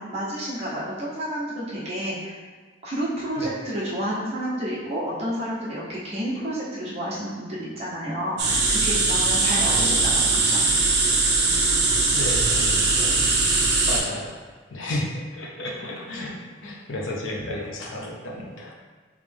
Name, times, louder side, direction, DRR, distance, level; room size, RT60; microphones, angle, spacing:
voice 1, 0.0-2.4 2.8-10.7, equal, 35° right, -7 dB, 1.0 m, -30 dB
sound 1, 8.4-14.0, right 3 dB, 60° right, 0.7 m, -21 dB
voice 2, 9.6-10.0 12.1-13.3 13.8-14.4 14.7-16.4 16.6-18.7, left 1 dB, 80° left, -1 dB, 0.6 m, -32 dB
3.3 x 3.1 x 3.5 m, 1.4 s
head